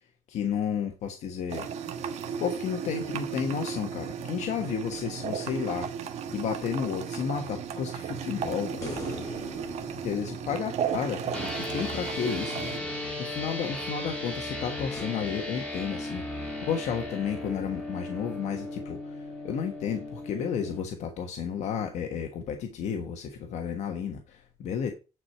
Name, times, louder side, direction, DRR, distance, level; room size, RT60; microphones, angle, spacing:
voice 1, 0.3-1.7 2.4-5.9 6.3-8.9 10.0-12.8 13.2-24.9, left 7 dB, 75° left, 1.3 m, -32 dB
sound 1, 1.5-12.8, right 7 dB, 70° right, 1.2 m, -35 dB
sound 2, 8.8-12.1 15.0-15.1, left 2 dB, 25° left, 4.1 m, -41 dB
sound 3, 11.3-20.8, left 1 dB, 10° left, 2.9 m, -36 dB
9.7 x 4.7 x 5.7 m
cardioid pair, 160°, 12 cm